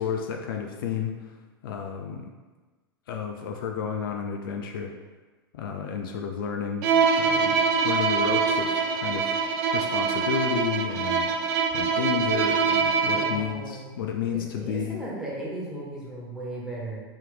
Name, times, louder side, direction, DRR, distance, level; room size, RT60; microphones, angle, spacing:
voice 1, 0.0-1.3 1.6-2.3 3.1-4.9 5.5-6.9 7.2-9.4 9.7-15.0, left 7 dB, 65° left, 3 dB, 0.4 m, -31 dB
Bowed string instrument, 6.8-13.5, right 5 dB, 50° right, 0.4 m, -24 dB
voice 2, 13.1-13.9 14.3-17.0, right 1 dB, 5° right, -7 dB, 1.3 m, -36 dB
3.5 x 2.9 x 3.3 m, 1.3 s
figure-of-eight pair, 95°, 12 cm